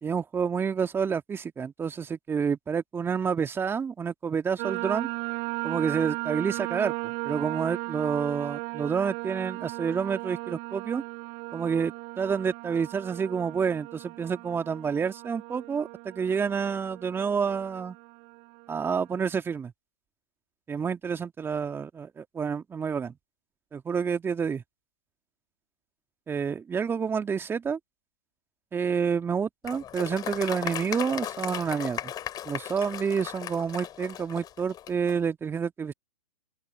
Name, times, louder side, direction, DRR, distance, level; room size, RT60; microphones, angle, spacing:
voice 1, 0.0-5.1 5.6-11.0 11.5-18.0 18.7-19.7 20.7-23.1 23.7-24.6 26.3-27.8 28.7-32.1 32.5-35.9, right 6 dB, 15° right, 1.9 m, -29 dB
sound 1, 4.6-19.3, right 31 dB, 40° right, 2.3 m, -37 dB
Applause, 29.6-35.2, left 11 dB, 25° left, 4.6 m, -37 dB
open air
figure-of-eight pair, 115°, 16 cm